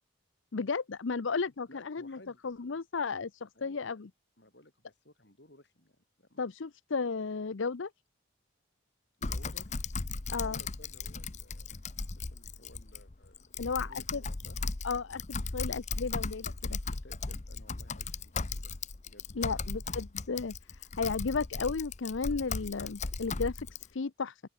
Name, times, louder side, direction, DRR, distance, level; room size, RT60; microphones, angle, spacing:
voice 1, 0.5-2.2 2.4-4.1 6.4-7.9 10.3-10.6 13.6-14.2 14.8-16.8 19.4-23.7 23.9-24.4, left 4 dB, 70° left, 0.6 m, -34 dB
voice 2, 1.7-2.4 3.5-3.8 4.4-6.4 9.2-9.7 10.3-11.8 12.2-14.6 16.0-16.1 16.9-19.7 23.7-23.8, left 1 dB, 55° left, 5.1 m, -58 dB
Typing, 9.2-23.9, left 4 dB, 35° left, 0.8 m, -37 dB
open air
head